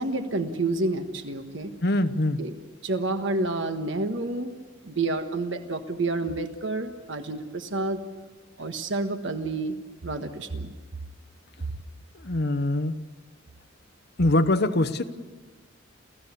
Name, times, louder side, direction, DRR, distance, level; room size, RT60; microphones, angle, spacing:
voice 1, 0.0-1.7 2.4-2.5 2.8-4.5 4.8-8.0 8.6-9.7 10.0-10.7, right 2 dB, 65° right, 1.4 m, -29 dB
voice 2, 1.8-2.4 12.2-12.9 14.2-15.0, left 1 dB, 55° left, 1.0 m, -23 dB
28.5 x 15.0 x 8.4 m
head